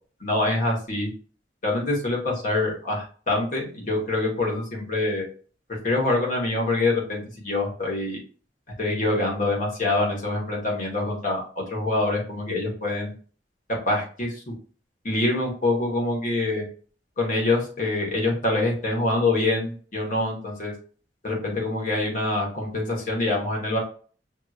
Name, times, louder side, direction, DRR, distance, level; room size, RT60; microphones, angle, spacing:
voice 1, 0.2-1.1 1.6-5.2 5.8-8.2 8.8-13.1 13.8-14.5 15.0-16.6 17.2-20.7 21.2-23.8, left 2 dB, 45° left, -1 dB, 1.6 m, -25 dB
5.7 x 3.1 x 2.5 m, 0.41 s
head